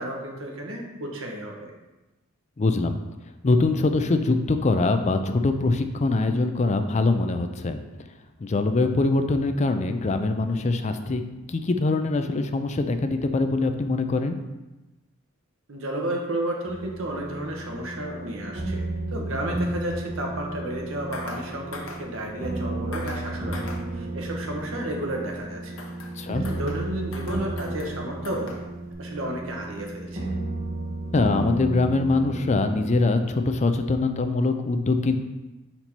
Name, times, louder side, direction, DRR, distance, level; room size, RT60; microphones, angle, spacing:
voice 1, 0.0-1.7 15.7-18.9 19.1-25.8 26.3-28.5 29.0-30.3, right 1 dB, 70° right, 0 dB, 1.1 m, -32 dB
voice 2, 2.6-3.0 3.4-7.8 8.4-11.2 11.5-14.4 19.3-19.4 26.2-26.4 31.1-35.2, left 3 dB, 35° left, 8 dB, 0.4 m, -23 dB
sound 1, 16.6-33.1, right 2 dB, 35° right, 1.8 m, -33 dB
sound 2, 21.1-21.4 21.7-22.0 22.9-23.3 23.5-23.8 25.8-26.2 26.4-26.9 27.1-28.0 28.2-28.7 28.9-29.0, left 3 dB, 70° left, 0.8 m, -40 dB
5.3 x 4.4 x 4.4 m, 1.1 s
head